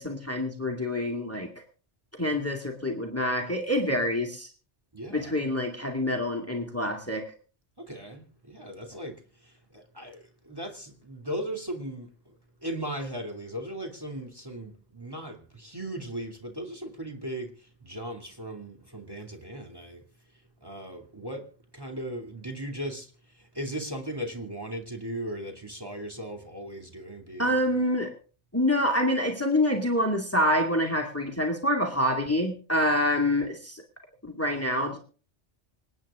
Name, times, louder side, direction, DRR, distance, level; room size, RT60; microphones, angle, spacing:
voice 1, 0.0-1.5 2.2-4.5 5.1-7.2 27.4-28.1 28.5-33.8 34.2-35.0, left 1 dB, 10° left, 2.3 m, -26 dB
voice 2, 4.9-5.3 7.8-20.0 20.3-21.5 21.7-27.6, right 1 dB, 20° right, 2.6 m, -38 dB
26.5 x 9.2 x 3.7 m
omnidirectional pair, 1.2 m